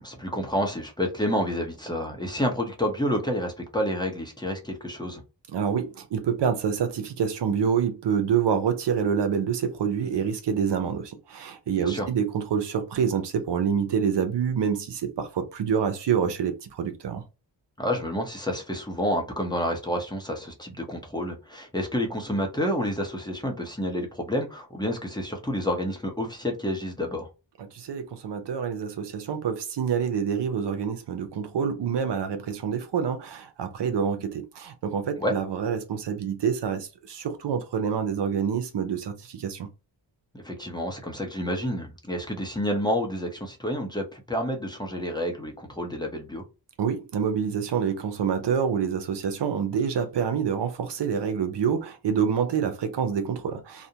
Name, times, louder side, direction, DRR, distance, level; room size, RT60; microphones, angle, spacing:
voice 1, 0.0-5.2 11.8-12.1 17.8-27.3 35.2-35.3 40.3-46.4, equal, 10° left, 0.7 m, -29 dB
voice 2, 5.5-17.2 27.7-39.7 46.8-53.9, right 7 dB, 70° right, 0.6 m, -27 dB
2.4 x 2.1 x 2.7 m
wide cardioid pair, 80°, 44 cm